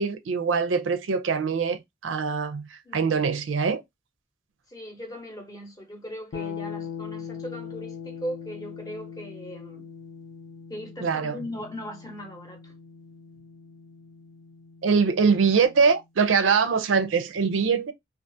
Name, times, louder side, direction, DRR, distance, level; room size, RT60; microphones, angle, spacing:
voice 1, 0.0-2.6 2.9-3.8 11.0-11.4 14.8-17.9, right 5 dB, 90° right, 0.4 m, -23 dB
voice 2, 2.8-3.3 4.7-9.9 10.7-12.7, equal, 20° left, 0.7 m, -39 dB
sound 1, 6.3-16.1, left 7 dB, 60° left, 0.5 m, -41 dB
2.4 x 2.4 x 2.6 m
head